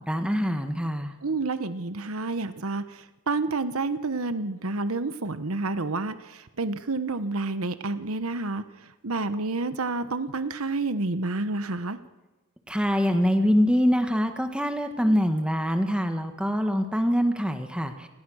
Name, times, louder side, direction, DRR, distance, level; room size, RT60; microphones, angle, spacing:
voice 1, 0.1-1.1 12.7-18.1, equal, 5° right, 6 dB, 1.6 m, -24 dB
voice 2, 1.2-12.0, right 3 dB, 80° right, 11 dB, 1.2 m, -29 dB
29.5 x 20.5 x 6.4 m, 1.2 s
head